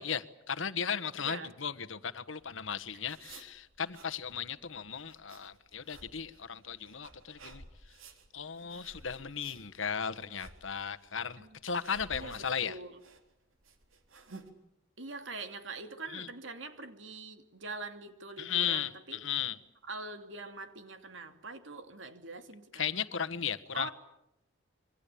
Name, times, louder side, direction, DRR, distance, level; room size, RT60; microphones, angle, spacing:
voice 1, 0.0-7.6 8.3-12.8 16.1-16.3 18.4-19.6 22.7-23.9, left 7 dB, 75° left, 1.3 m, -36 dB
voice 2, 1.2-1.5 11.4-11.5 12.1-12.9 15.0-19.2 19.8-22.8 23.7-23.9, right 3 dB, 70° right, 2.8 m, -43 dB
sound 1, 2.4-14.5, right 3 dB, 90° right, 3.7 m, -54 dB
26.5 x 24.0 x 8.5 m
head